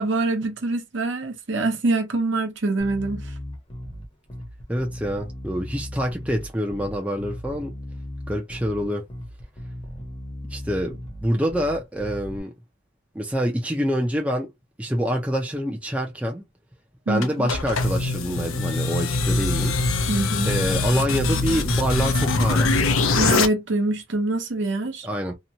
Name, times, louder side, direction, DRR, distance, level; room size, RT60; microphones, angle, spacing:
voice 1, 0.0-3.3 17.1-17.5 20.1-20.5 23.2-25.1, right 2 dB, 65° right, 0.7 m, -25 dB
Bass guitar, 2.8-12.4, equal, 25° left, 0.8 m, -37 dB
voice 2, 4.7-7.7 8.3-9.0 10.5-12.5 13.1-14.5 14.8-16.4 17.1-19.7 20.0-20.1 20.5-22.8 25.0-25.3, equal, 5° right, 0.5 m, -26 dB
Dark Energy build up, 17.2-23.5, left 3 dB, 85° left, 0.6 m, -23 dB
2.9 x 2.2 x 2.7 m
head